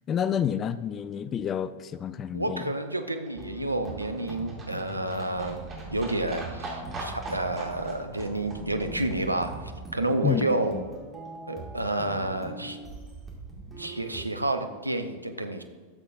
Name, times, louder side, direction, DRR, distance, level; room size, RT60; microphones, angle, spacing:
voice 1, 0.1-2.7 10.2-10.9, left 8 dB, 25° left, 15 dB, 0.3 m, -29 dB
Livestock farm animals working animals, 2.2-10.4 10.6-10.7 11.0-11.1 11.3-11.4 11.6-11.7 11.9-12.0 12.2-12.3 12.5-12.6 12.8-12.9, right 2 dB, 25° right, 2.6 m, -43 dB
voice 2, 2.3-5.6 5.9-9.6 9.9-10.8 11.5-12.8 13.8-15.6, right 2 dB, 85° right, 7 dB, 0.6 m, -30 dB
sound 1, 3.4-14.3, right 2 dB, 5° right, 1.9 m, -42 dB
12.0 x 7.4 x 2.5 m, 1.5 s
figure-of-eight pair, 90°, 0 cm